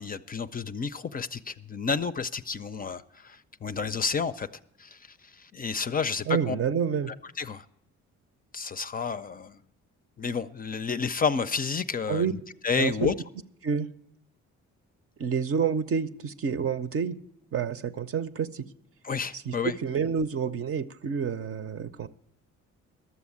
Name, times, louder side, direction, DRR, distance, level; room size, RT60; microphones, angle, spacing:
voice 1, 0.0-4.5 4.8-6.6 7.4-7.6 8.5-9.6 10.2-13.1 19.0-19.7, left 5 dB, 30° left, 0.4 m, -30 dB
voice 2, 6.3-7.1 12.1-12.3 12.8-13.1 13.6-13.9 15.2-17.2 17.5-18.7 19.5-22.1, right 7 dB, 50° right, 0.7 m, -28 dB
12.5 x 7.1 x 8.5 m
cardioid pair, 90°, 30 cm